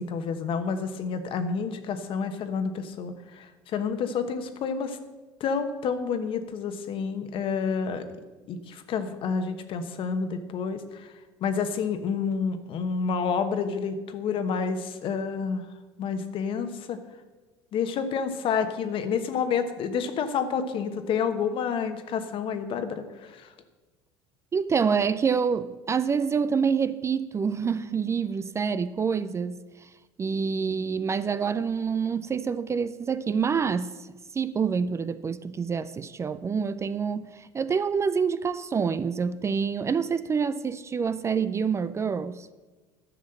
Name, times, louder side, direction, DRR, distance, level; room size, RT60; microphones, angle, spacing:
voice 1, 0.0-5.0 5.4-8.1 8.5-11.1 11.4-15.7 16.0-17.0 17.7-23.5, left 6 dB, 50° left, 1.2 m, -29 dB
voice 2, 24.5-29.9 30.2-42.5, right 6 dB, 25° right, 0.4 m, -27 dB
11.0 x 6.3 x 7.8 m
supercardioid pair, 90°, 11 cm